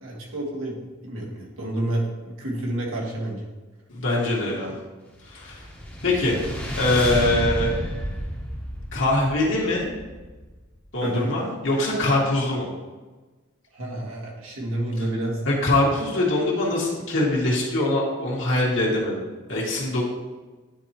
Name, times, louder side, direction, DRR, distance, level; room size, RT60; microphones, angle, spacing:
voice 1, 0.0-0.8 1.0-3.5 11.0-11.3 13.7-15.4, right 1 dB, 85° right, -2 dB, 1.6 m, -29 dB
voice 2, 3.9-4.7 5.3-5.6 6.0-6.4 6.8-7.7 8.9-9.9 10.9-12.7 15.5-19.2 19.5-20.0, left 1 dB, 70° left, -4 dB, 1.7 m, -23 dB
sound 1, 5.2-10.6, equal, 10° left, 0.9 m, -31 dB
9.6 x 4.3 x 2.9 m, 1.2 s
head